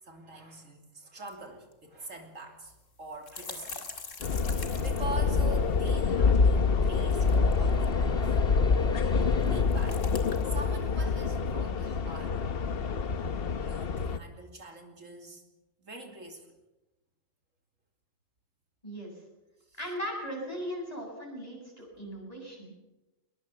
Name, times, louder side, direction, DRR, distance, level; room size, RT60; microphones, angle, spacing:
voice 1, 0.0-4.0 4.2-8.2 9.4-12.4 13.6-15.4 15.8-16.5 19.7-19.8, right 3 dB, 85° right, 4 dB, 3.4 m, -44 dB
sound 1, 1.3-1.4 1.7-1.8 2.7-5.8 6.8-7.9 9.2-10.6, left 4 dB, 75° left, 2.5 m, -43 dB
sound 2, 4.2-14.2, left 5 dB, 50° left, 1.1 m, -26 dB
sound 3, 5.5-9.6, left 1 dB, 5° left, 1.5 m, -41 dB
voice 2, 19.8-22.7, equal, 30° left, 0 dB, 7.9 m, -38 dB
22.0 x 21.0 x 7.1 m, 1.0 s
omnidirectional pair, 1.3 m